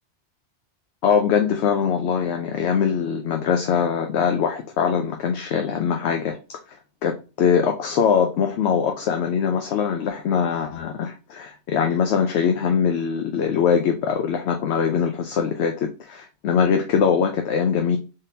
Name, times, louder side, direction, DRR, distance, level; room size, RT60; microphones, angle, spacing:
voice 1, 1.0-6.4 7.0-18.0, left 7 dB, 80° left, 0.9 m, -22 dB
3.7 x 3.7 x 2.7 m
omnidirectional pair, 1.1 m